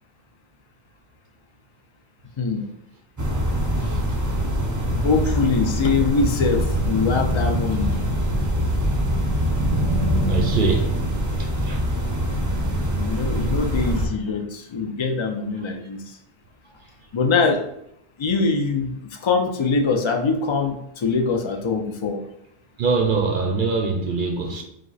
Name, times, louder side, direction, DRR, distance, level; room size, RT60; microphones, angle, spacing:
sound 1, 3.2-14.1, equal, 20° right, 0.6 m, -23 dB
voice 1, 5.0-7.9 12.9-16.0 17.1-17.6 18.2-22.2, left 4 dB, 40° left, 0.4 m, -23 dB
voice 2, 10.3-11.0 11.4-11.8 13.2-13.3 22.8-24.6, right 4 dB, 55° right, 0.7 m, -23 dB
5.1 x 2.1 x 4.0 m
omnidirectional pair, 1.1 m